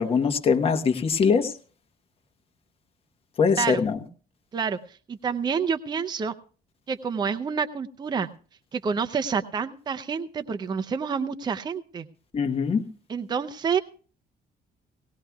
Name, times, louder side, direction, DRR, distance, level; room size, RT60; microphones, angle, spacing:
voice 1, 0.0-1.5 3.4-4.0 12.3-12.8, left 5 dB, 35° left, 6 dB, 1.1 m, -22 dB
voice 2, 5.1-6.3 6.9-8.3 8.7-12.0 13.1-13.8, right 6 dB, 25° right, 9 dB, 0.5 m, -28 dB
18.0 x 18.0 x 2.3 m, 0.40 s
cardioid pair, 135°, 17 cm